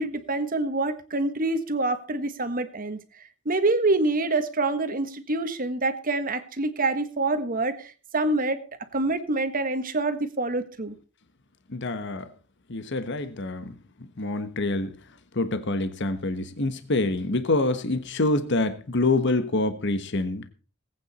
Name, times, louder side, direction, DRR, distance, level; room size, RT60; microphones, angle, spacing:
voice 1, 0.0-3.0 3.4-8.6 8.9-10.9, right 2 dB, 45° right, 1.5 m, -26 dB
voice 2, 11.7-12.3 12.7-13.7 14.2-14.9 15.3-20.5, left 2 dB, 60° left, 1.2 m, -26 dB
19.5 x 9.0 x 4.2 m
head